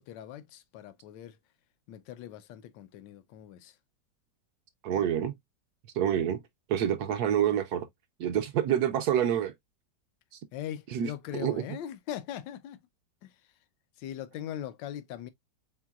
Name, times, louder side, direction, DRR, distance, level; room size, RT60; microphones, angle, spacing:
voice 1, 0.0-1.4 1.9-3.8 10.5-12.8 13.2-13.4 14.0-15.3, left 10 dB, 80° left, 1.3 m, -40 dB
voice 2, 4.8-5.3 5.9-6.4 6.7-7.9 8.2-9.5 10.9-11.1 11.4-11.6, right 10 dB, 70° right, 1.0 m, -27 dB
4.6 x 3.8 x 2.3 m
omnidirectional pair, 2.0 m